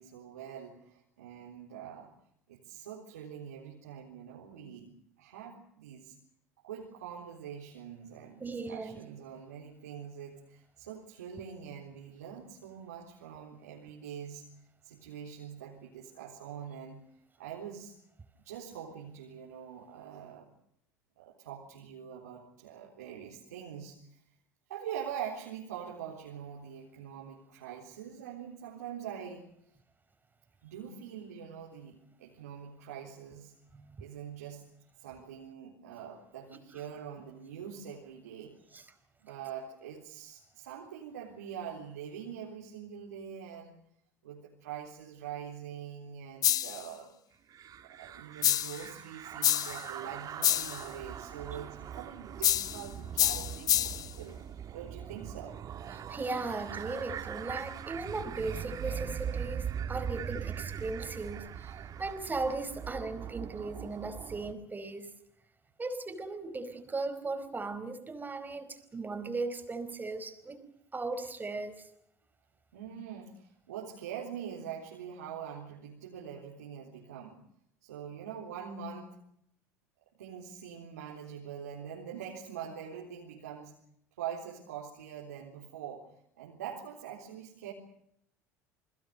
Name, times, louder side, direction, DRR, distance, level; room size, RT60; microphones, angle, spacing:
voice 1, 0.0-2.1 2.5-4.9 5.2-6.1 6.6-14.4 14.8-17.0 17.4-18.0 18.3-20.5 21.2-24.2 24.7-29.5 30.6-33.5 34.0-34.6 35.0-38.7 39.2-43.7 44.2-47.2 47.8-54.4 54.7-55.6 72.7-77.4 77.8-79.2 80.1-83.8 84.2-87.7, right 8 dB, 80° right, -2 dB, 3.8 m, -44 dB
voice 2, 8.4-9.0 33.7-33.9 38.7-38.8 56.1-61.7 62.0-65.1 65.8-70.6 70.9-71.9, right 3 dB, 20° right, 10 dB, 4.9 m, -37 dB
sound 1, 46.4-46.9 48.4-48.8 49.4-49.8 50.4-50.8 52.4-52.8 53.2-54.1, left 11 dB, 45° left, 0.9 m, -27 dB
sound 2, 47.5-64.5, right 9 dB, 45° right, 2.2 m, -41 dB
29.0 x 21.5 x 6.6 m, 0.72 s
hypercardioid pair, 70°, 9 cm